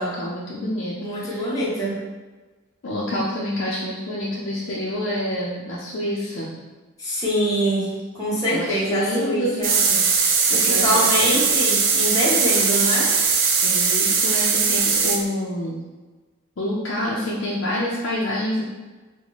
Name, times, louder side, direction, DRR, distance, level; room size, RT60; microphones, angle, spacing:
voice 1, 0.0-1.5 2.8-6.5 8.5-10.0 10.5-11.4 13.6-15.8 16.6-18.6, equal, 75° left, -6 dB, 0.5 m, -27 dB
voice 2, 1.0-2.0 7.0-9.8 10.5-13.1, equal, 20° left, -9 dB, 1.0 m, -24 dB
sound 1, 9.6-15.2, right 5 dB, 85° right, 0.5 m, -20 dB
4.0 x 2.1 x 3.0 m, 1.3 s
head